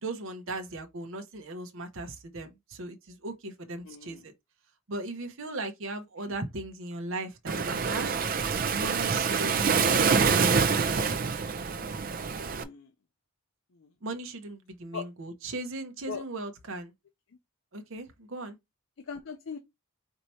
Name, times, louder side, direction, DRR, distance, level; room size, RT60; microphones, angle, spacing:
voice 1, 0.0-4.3 4.9-8.2 8.7-11.1 14.0-16.9 17.7-18.6, right 2 dB, 65° right, 0.8 m, -38 dB
voice 2, 3.8-4.2 6.2-6.3 12.5-12.9 13.7-13.9 14.9-15.1 16.1-16.2 19.1-19.6, left 6 dB, 65° left, 0.5 m, -40 dB
Waves surf, 7.5-12.6, right 5 dB, 40° right, 0.4 m, -26 dB
4.5 x 2.8 x 4.2 m
head